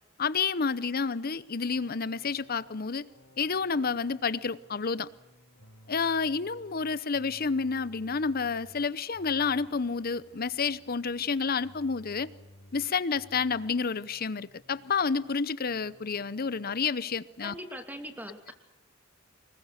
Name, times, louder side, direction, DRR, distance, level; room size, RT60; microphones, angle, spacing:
voice 1, 0.2-3.1 3.4-5.1 5.9-12.3 12.7-17.5, left 5 dB, 50° left, 0.8 m, -29 dB
sound 1, 1.6-15.4 15.7-16.8, equal, 80° left, 3.2 m, -56 dB
voice 2, 17.4-18.5, equal, 10° right, 2.6 m, -41 dB
25.0 x 21.5 x 6.6 m
head